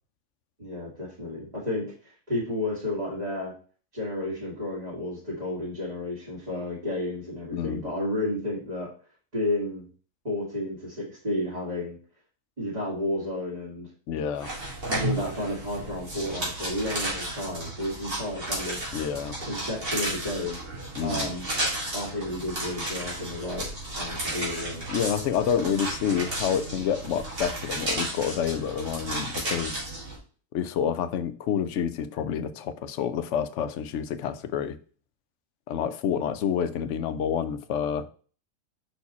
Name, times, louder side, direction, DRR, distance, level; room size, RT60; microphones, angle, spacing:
voice 1, 0.6-3.5 3.9-8.9 9.3-9.9 10.2-12.0 12.6-13.9 14.8-18.8 19.5-20.6 21.0-21.4 21.9-23.7 23.9-24.9, left 1 dB, 30° right, 2.1 m, -32 dB
voice 2, 7.5-7.8 14.1-14.5 18.9-19.4 21.0-21.3 24.9-29.8 30.5-34.8 35.7-38.1, left 8 dB, 65° left, 0.9 m, -28 dB
sound 1, 14.4-30.2, right 1 dB, 75° right, 3.1 m, -33 dB
5.6 x 4.6 x 4.1 m
omnidirectional pair, 1.4 m